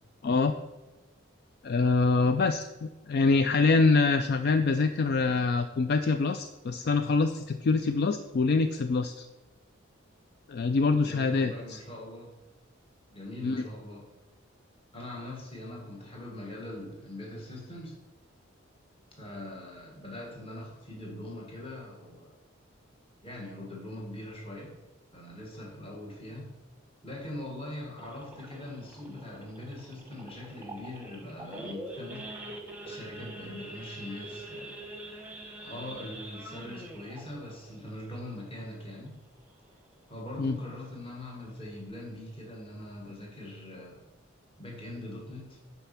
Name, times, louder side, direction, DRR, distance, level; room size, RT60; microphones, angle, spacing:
voice 1, 0.2-0.5 1.6-9.2 10.5-11.8 13.4-13.6 40.4-40.6, left 4 dB, 50° left, 9 dB, 0.4 m, -25 dB
voice 2, 10.9-12.3 13.1-14.1 14.9-18.0 19.2-22.3 23.2-24.8 25.1-26.5 27.0-32.3 32.8-34.8 35.6-39.2 40.1-44.0 44.6-45.6, left 1 dB, 30° left, -1 dB, 1.6 m, -42 dB
Idling / Accelerating revving vroom / Sawing, 28.0-39.1 39.5-39.7 39.9-40.0 40.5-40.8 41.2-41.3 41.5-41.9, right 1 dB, 10° right, 1.0 m, -44 dB
9.0 x 4.2 x 5.8 m, 1.1 s
head